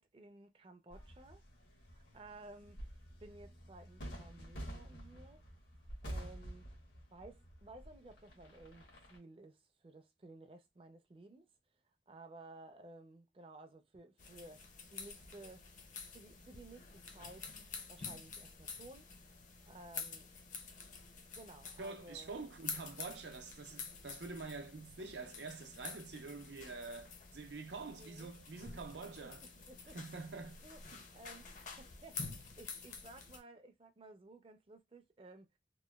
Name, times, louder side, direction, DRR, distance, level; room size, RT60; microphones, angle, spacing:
voice 1, 0.0-1.4 1.9-2.9 3.2-5.4 6.0-6.7 7.1-11.5 12.1-14.6 14.9-15.7 16.1-17.6 17.9-19.1 19.7-20.3 21.3-22.3 27.8-28.3 29.7-30.0 30.6-30.8 31.1-31.5 31.8-32.2 32.6-35.5, right 2 dB, 30° right, 0.4 m, -55 dB
sound 1, 0.9-9.2, equal, 90° left, 1.1 m, -50 dB
sound 2, 14.2-33.4, left 5 dB, 45° left, 0.5 m, -49 dB
voice 2, 21.8-29.4 29.9-30.6 30.9-31.0, right 4 dB, 85° right, 0.6 m, -46 dB
3.0 x 2.1 x 2.2 m
head